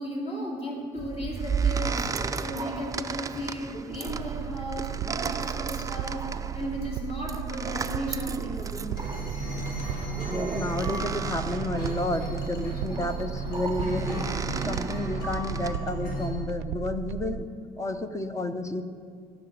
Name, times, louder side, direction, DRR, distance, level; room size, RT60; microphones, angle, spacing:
voice 1, 0.0-2.1 2.4-9.0 12.7-13.1, equal, 35° left, -2 dB, 2.6 m, -35 dB
sound 1, 1.0-15.8, right 5 dB, 20° right, 0.4 m, -34 dB
sound 2, 4.0-17.4, right 11 dB, 75° right, 0.4 m, -35 dB
sound 3, 8.9-16.3, equal, 65° left, 3.4 m, -35 dB
voice 2, 10.3-14.2 14.7-17.5 17.8-18.8, left 2 dB, 15° left, 9 dB, 0.7 m, -31 dB
15.0 x 6.0 x 8.0 m, 2.1 s
cardioid pair, 110°, 17 cm